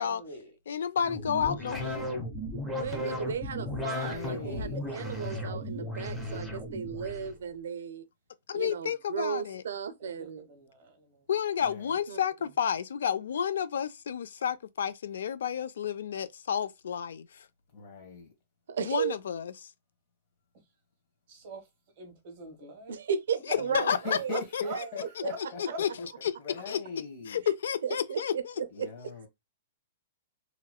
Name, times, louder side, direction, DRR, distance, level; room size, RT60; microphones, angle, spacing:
voice 1, 0.0-0.5 4.4-5.5 10.0-11.2 21.3-21.7 22.0-22.9 23.8-24.8 25.3-25.4 25.7-25.8, right 3 dB, 35° right, 1.0 m, -44 dB
voice 2, 0.7-2.1 8.5-9.6 11.3-17.5 18.8-19.7 23.5-24.2 24.5-24.6 25.6-25.9 26.2-26.3 26.7-26.8 27.3-28.5, left 8 dB, 85° left, 0.3 m, -31 dB
sound 1, 1.0-7.3, left 1 dB, ahead, 0.5 m, -35 dB
voice 3, 2.8-8.0 8.5-10.5 12.1-12.2 18.7-19.2 22.9-24.4 24.7-24.9 25.2-25.3 27.5-27.6 27.8-28.9, right 7 dB, 90° right, 0.5 m, -35 dB
voice 4, 3.7-4.8 11.6-12.0 17.7-18.3 23.5-25.6 26.0-26.1 26.4-27.4 28.7-29.3, left 4 dB, 35° left, 1.2 m, -40 dB
3.0 x 2.9 x 2.2 m
hypercardioid pair, 175°, 0 cm